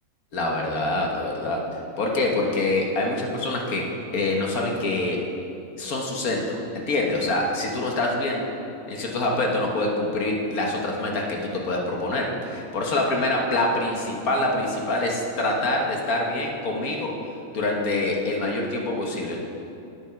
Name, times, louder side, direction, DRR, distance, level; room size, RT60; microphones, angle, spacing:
voice 1, 0.3-1.6 2.0-3.8 4.1-5.2 5.8-8.4 8.9-17.1 17.5-19.4, left 2 dB, 85° left, 0 dB, 1.8 m, -25 dB
9.3 x 8.7 x 5.7 m, 2.8 s
omnidirectional pair, 1.5 m